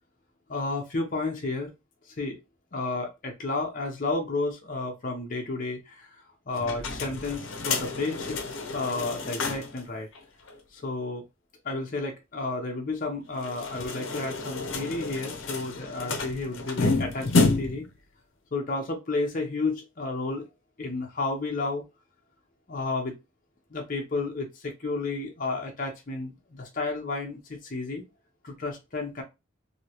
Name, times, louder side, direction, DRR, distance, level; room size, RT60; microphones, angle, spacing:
voice 1, 0.5-1.7 2.1-2.4 2.7-8.5 8.7-10.1 10.7-11.3 11.6-17.9 18.5-20.5 20.8-21.8 22.7-23.1 23.7-28.0 28.4-29.2, left 3 dB, 45° left, 1 dB, 0.7 m, -32 dB
sound 1, 6.6-9.8 10.1-10.2 10.5-10.6 13.3-17.9, left 3 dB, 90° left, 0.7 m, -29 dB
2.9 x 2.7 x 2.9 m, 0.24 s
head